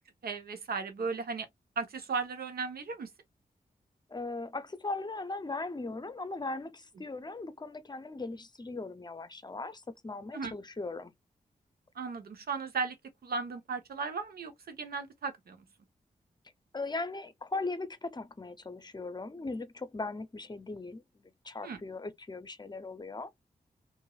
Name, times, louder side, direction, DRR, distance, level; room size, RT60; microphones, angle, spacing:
voice 1, 0.2-1.5 1.8-3.1 10.3-10.5 11.9-13.0 13.2-15.6 21.6-21.8, right 5 dB, 80° right, 0.9 m, -36 dB
voice 2, 4.1-11.1 16.7-23.3, left 3 dB, 25° left, 0.6 m, -39 dB
3.0 x 2.6 x 2.3 m
cardioid pair, 60°, 16 cm